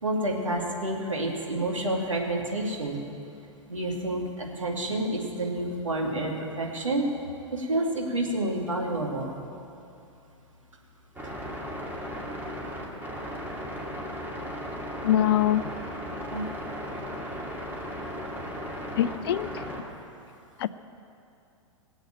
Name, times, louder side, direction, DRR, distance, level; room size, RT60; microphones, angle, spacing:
voice 1, 0.0-3.0 3.7-7.1 7.5-9.3 16.2-16.5, right 1 dB, 80° right, -1 dB, 2.6 m, -29 dB
sound 1, 11.2-19.8, equal, 10° right, 2.4 m, -36 dB
voice 2, 15.0-15.6 19.0-19.6 20.6-20.7, left 11 dB, 50° left, 15 dB, 0.5 m, -23 dB
19.5 x 8.0 x 8.9 m, 2.7 s
figure-of-eight pair, 100°, 16 cm